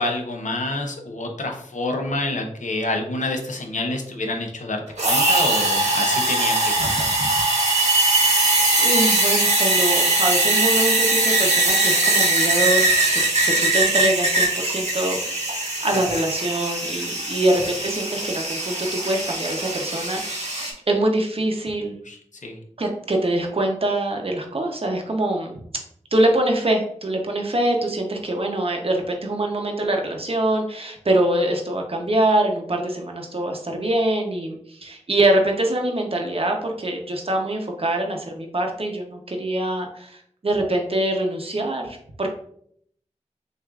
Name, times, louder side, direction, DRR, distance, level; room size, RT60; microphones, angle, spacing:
voice 1, 0.0-7.1 15.9-16.1 22.0-22.6, left 2 dB, 90° left, 3 dB, 0.7 m, -28 dB
sound 1, 5.0-20.7, right 2 dB, 70° right, 1.1 m, -21 dB
voice 2, 7.7-8.1 8.8-15.2 15.6-22.0 22.8-25.5 26.1-42.3, right 1 dB, 50° right, 2 dB, 0.8 m, -24 dB
6.4 x 2.5 x 2.4 m, 0.66 s
wide cardioid pair, 70°, 12 cm